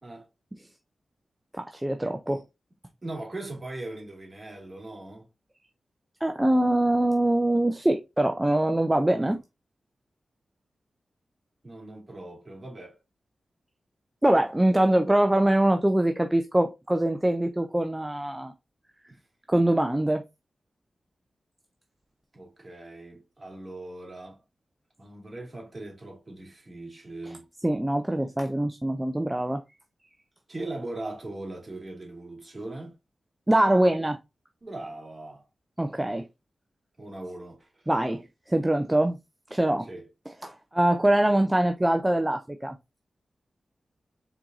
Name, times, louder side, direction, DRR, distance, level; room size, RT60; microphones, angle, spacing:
voice 1, 1.6-2.4 6.2-9.4 14.2-18.5 19.5-20.2 27.3-27.4 27.6-29.6 33.5-34.2 35.8-36.2 37.9-39.2 39.5-39.9 40.4-42.7, right 1 dB, 15° right, 0.6 m, -23 dB
voice 2, 3.0-5.3 9.2-9.4 11.6-13.0 19.1-19.2 22.3-24.4 25.0-27.5 30.5-33.0 34.6-35.4 37.0-37.7 39.9-40.1, right 2 dB, 35° right, 2.7 m, -39 dB
4.4 x 3.9 x 2.7 m
cardioid pair, 40°, 0 cm